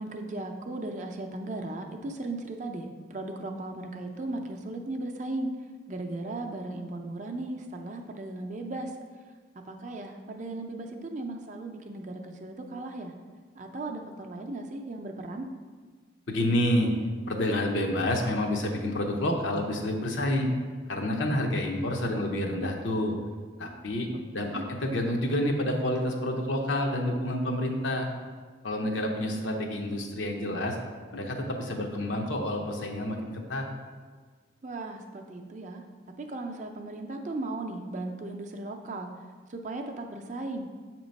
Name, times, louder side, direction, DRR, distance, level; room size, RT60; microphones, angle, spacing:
voice 1, 0.0-5.5 5.9-8.9 9.7-13.1 13.6-15.5 24.3-24.7 34.6-35.8 36.2-39.1 39.5-40.7, right 2 dB, 40° right, 3 dB, 0.5 m, -36 dB
voice 2, 16.3-16.9 17.3-20.5 20.9-23.2 23.6-28.1 28.6-30.8 31.1-33.6, left 1 dB, 80° left, 2 dB, 0.8 m, -28 dB
7.1 x 3.0 x 5.2 m, 1.5 s
head